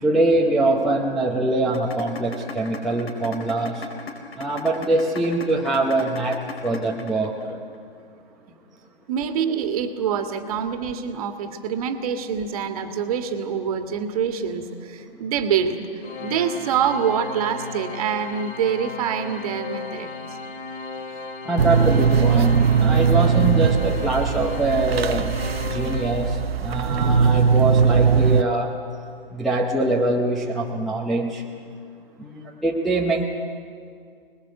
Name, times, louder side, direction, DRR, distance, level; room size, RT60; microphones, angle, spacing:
voice 1, 0.0-3.9 4.4-7.6 21.5-25.3 25.6-28.7 29.3-31.4 32.2-33.3, right 2 dB, ahead, -5 dB, 0.7 m, -23 dB
sound 1, 1.7-7.7, left 5 dB, 80° left, 4.7 m, -35 dB
voice 2, 9.1-20.4, right 7 dB, 35° right, 6 dB, 1.8 m, -25 dB
Organ, 16.0-26.8, left 4 dB, 55° left, 2.8 m, -35 dB
sound 2, 21.6-28.4, right 6 dB, 80° right, 0.9 m, -19 dB
26.0 x 20.5 x 7.8 m, 2.3 s
hypercardioid pair, 155°, 30 cm